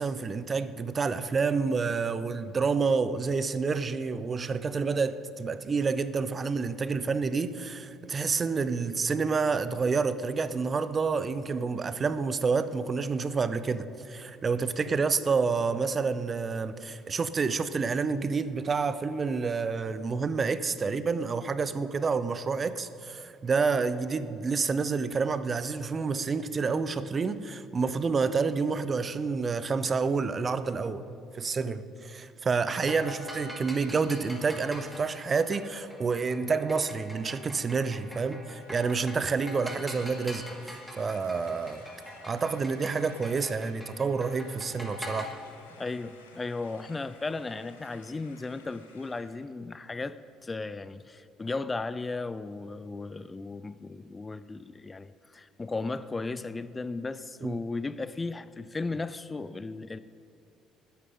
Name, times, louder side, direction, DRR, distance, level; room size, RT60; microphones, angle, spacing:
voice 1, 0.0-31.0 31.3-41.9 42.2-45.3 57.4-57.6, right 4 dB, 35° right, 0.7 m, -29 dB
sound 1, 32.5-45.3, left 1 dB, ahead, 2.8 m, -44 dB
sound 2, 38.5-49.4, left 4 dB, 90° left, 1.3 m, -57 dB
voice 2, 45.7-60.0, left 3 dB, 25° left, 0.4 m, -35 dB
20.0 x 10.0 x 3.8 m
hypercardioid pair, 55°, 0 cm